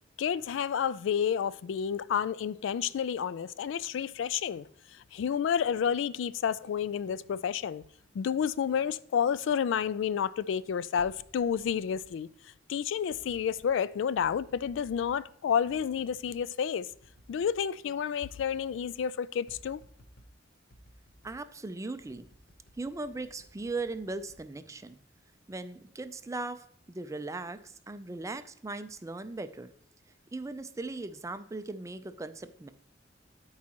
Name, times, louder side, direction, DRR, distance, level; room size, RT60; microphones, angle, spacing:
voice 1, 0.2-4.7 5.1-7.8 8.1-12.3 12.7-16.9 17.3-19.8, left 8 dB, 75° left, 0.3 m, -30 dB
sound 1, 11.0-12.1 13.1-13.7 14.2-15.2 15.7-16.4 16.9-17.6 17.9-18.0 18.2-19.0 19.5-20.4 20.7-21.4 22.0-25.1 25.5-25.9, equal, 50° left, 0.9 m, -57 dB
voice 2, 21.2-22.3 22.8-25.0 25.5-29.7 30.3-32.7, right 3 dB, 15° right, 0.4 m, -38 dB
12.5 x 4.8 x 2.9 m
head